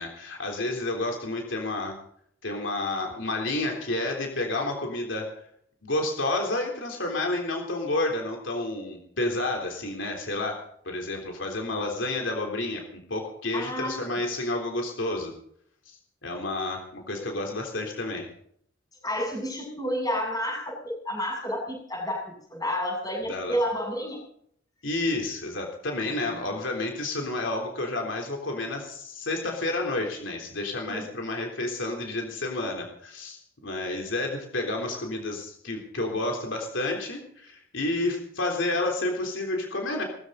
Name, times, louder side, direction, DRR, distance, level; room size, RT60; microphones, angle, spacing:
voice 1, 0.0-2.0 2.4-5.3 5.8-15.3 15.9-18.3 23.3-23.6 24.8-40.0, left 2 dB, 70° left, 1 dB, 3.6 m, -30 dB
voice 2, 13.5-14.0 17.1-17.4 19.0-24.2 30.9-31.1, equal, 20° left, 1 dB, 7.3 m, -30 dB
20.5 x 14.5 x 4.0 m, 0.65 s
head